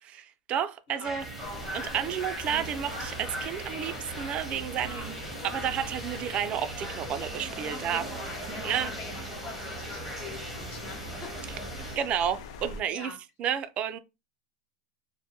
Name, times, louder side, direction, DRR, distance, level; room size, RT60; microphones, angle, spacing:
voice 1, 0.1-1.3 1.7-5.0 5.4-8.0 8.6-8.9 12.0-13.1 13.4-14.0, right 9 dB, 35° right, 0.4 m, -31 dB
sound 1, 1.0-12.0, right 2 dB, ahead, 0.8 m, -39 dB
sound 2, 1.4-12.8, left 6 dB, 70° left, 0.4 m, -44 dB
voice 2, 4.7-5.1 7.7-12.0 12.9-13.2, left 4 dB, 45° left, 1.0 m, -44 dB
2.2 x 2.1 x 2.8 m
hypercardioid pair, 105°, 3 cm